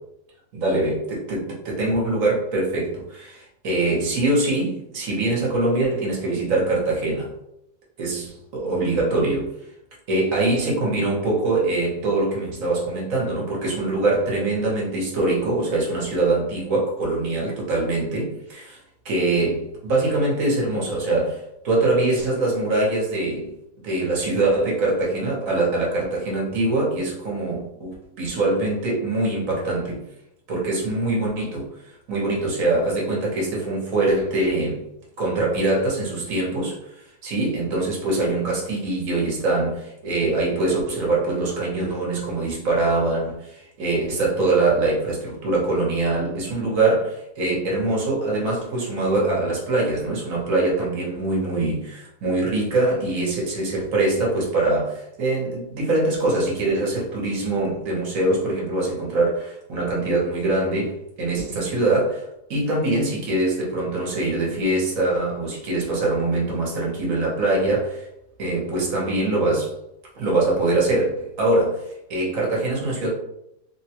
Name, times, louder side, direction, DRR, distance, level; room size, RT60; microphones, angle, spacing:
voice 1, 0.5-7.3 8.0-9.6 10.1-18.8 19.0-23.5 23.8-30.0 30.5-34.8 35.2-68.1 68.4-69.7 70.2-73.1, right 2 dB, 60° right, -3 dB, 1.2 m, -23 dB
3.4 x 2.2 x 2.8 m, 0.81 s
omnidirectional pair, 1.7 m